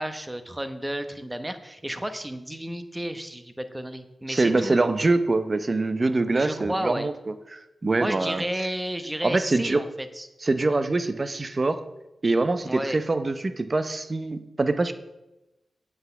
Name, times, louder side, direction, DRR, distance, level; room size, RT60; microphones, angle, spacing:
voice 1, 0.0-4.9 6.3-7.1 8.0-9.9 10.2-10.3 12.7-13.0, right 1 dB, 10° right, 9 dB, 1.0 m, -32 dB
voice 2, 4.3-8.4 9.2-9.8 10.4-11.8 12.2-14.9, right 2 dB, 40° right, 11 dB, 0.8 m, -24 dB
8.0 x 6.1 x 7.9 m, 0.96 s
cardioid pair, 75°, 0 cm